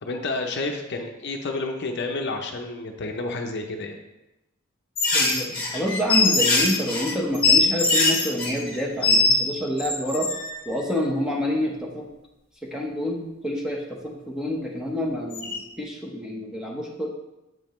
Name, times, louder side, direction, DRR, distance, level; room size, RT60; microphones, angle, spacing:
voice 1, 0.0-4.0, left 3 dB, 55° left, 3 dB, 0.6 m, -30 dB
sound 1, 5.0-9.4 9.8-10.6 15.3-15.6, left 3 dB, 25° left, 1.6 m, -21 dB
voice 2, 5.1-10.3 10.7-12.1 12.6-17.1, equal, 5° right, -2 dB, 0.8 m, -28 dB
7.5 x 5.2 x 3.0 m, 0.96 s
head